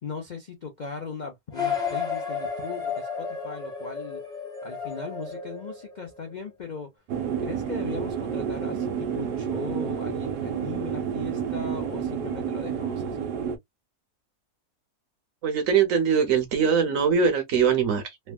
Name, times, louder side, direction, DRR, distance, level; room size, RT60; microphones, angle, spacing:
voice 1, 0.0-4.2 4.6-6.9 7.4-13.3, left 5 dB, 65° left, 0.4 m, -38 dB
sound 1, 1.5-6.3, left 5 dB, 5° left, 0.8 m, -32 dB
sound 2, 7.1-13.6, right 7 dB, 90° right, 1.3 m, -30 dB
voice 2, 15.4-18.3, right 6 dB, 60° right, 1.1 m, -22 dB
3.3 x 2.2 x 2.3 m
omnidirectional pair, 1.7 m